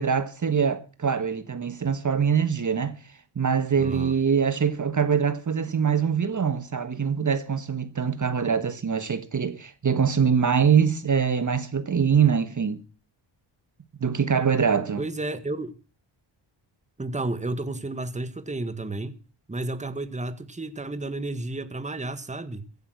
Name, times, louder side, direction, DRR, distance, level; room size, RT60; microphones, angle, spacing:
voice 1, 0.0-12.8 14.0-15.0, right 7 dB, 40° right, 1.4 m, -24 dB
voice 2, 3.8-4.2 15.0-15.8 17.0-19.2 19.5-22.7, right 2 dB, 15° right, 1.6 m, -32 dB
16.0 x 11.0 x 6.1 m
cardioid pair, 90°, 48 cm